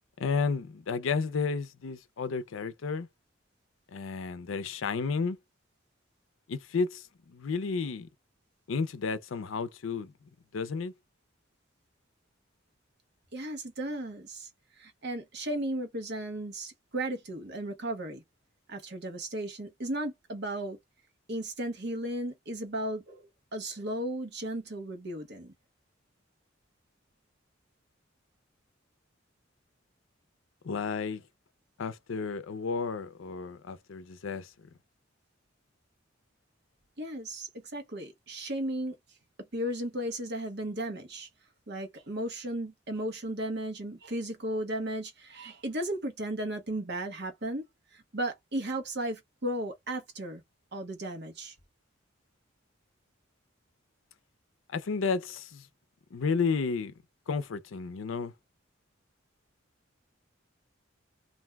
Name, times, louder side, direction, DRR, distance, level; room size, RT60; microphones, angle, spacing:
voice 1, 0.2-3.1 3.9-5.4 6.5-8.1 8.7-10.1 10.5-10.9 30.6-31.2 31.8-34.5 54.7-55.7 56.1-56.9 57.3-58.3, left 5 dB, 80° left, 0.5 m, -32 dB
voice 2, 13.3-14.5 14.8-18.2 18.7-20.8 21.3-25.5 37.0-38.9 39.5-41.3 41.7-47.6 47.9-50.4 50.7-51.5, right 1 dB, 55° right, 1.0 m, -35 dB
2.6 x 2.2 x 3.4 m
head